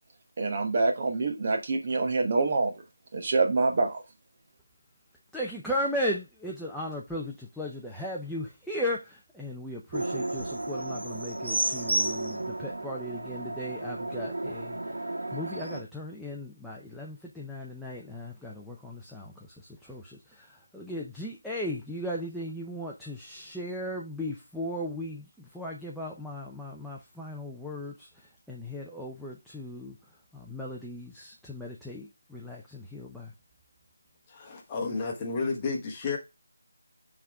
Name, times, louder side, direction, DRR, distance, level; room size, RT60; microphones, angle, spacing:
voice 1, 0.4-2.7 3.1-4.0, right 3 dB, 35° right, 1.0 m, -26 dB
voice 2, 5.3-14.8 15.3-28.1 28.5-30.0 30.3-33.3, left 1 dB, ahead, 0.5 m, -36 dB
sound 1, 9.9-15.8, right 2 dB, 90° right, 1.8 m, -32 dB
voice 3, 34.3-36.2, left 4 dB, 15° left, 1.1 m, -31 dB
5.5 x 3.7 x 4.6 m
figure-of-eight pair, 170°, 0 cm